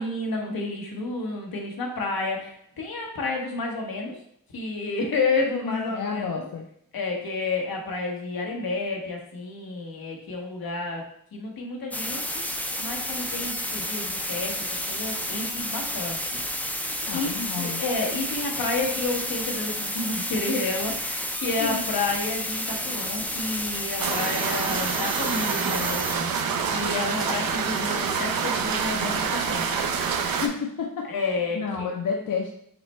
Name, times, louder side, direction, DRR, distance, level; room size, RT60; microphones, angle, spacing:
voice 1, 0.0-4.2 4.5-6.5 6.9-11.0 11.3-14.6 14.9-16.7 17.1-29.8 31.1-31.9, left 3 dB, 85° left, 0 dB, 1.1 m, -30 dB
voice 2, 5.6-6.6 17.0-17.8 21.6-21.8 30.3-32.5, left 5 dB, 65° left, 1 dB, 0.6 m, -31 dB
sound 1, 11.9-26.2, left 1 dB, 5° left, 0.4 m, -31 dB
sound 2, 24.0-30.5, right 6 dB, 75° right, 0.6 m, -27 dB
5.8 x 2.2 x 4.2 m, 0.69 s
wide cardioid pair, 140°, 35 cm